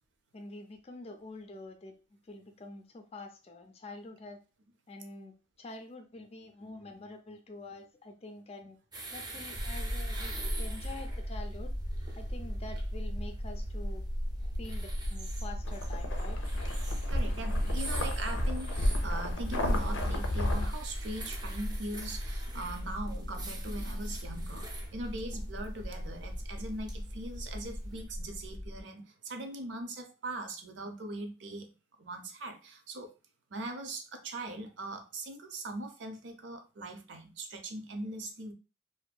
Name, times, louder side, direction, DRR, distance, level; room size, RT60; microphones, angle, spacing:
voice 1, 0.3-1.9 2.3-4.4 4.9-5.3 5.6-8.8 9.1-11.7 12.2-14.0 14.6-16.4, left 2 dB, 35° left, 5 dB, 0.4 m, -46 dB
sound 1, 8.9-28.0, right 2 dB, 25° right, 0.5 m, -47 dB
sound 2, 9.5-28.8, equal, 85° right, 1.5 m, -37 dB
sound 3, 15.6-20.7, left 1 dB, 85° left, 0.5 m, -32 dB
voice 2, 17.1-31.7 32.0-33.1 33.5-38.5, right 2 dB, 70° right, 5 dB, 0.5 m, -41 dB
2.6 x 2.5 x 2.2 m, 0.32 s
head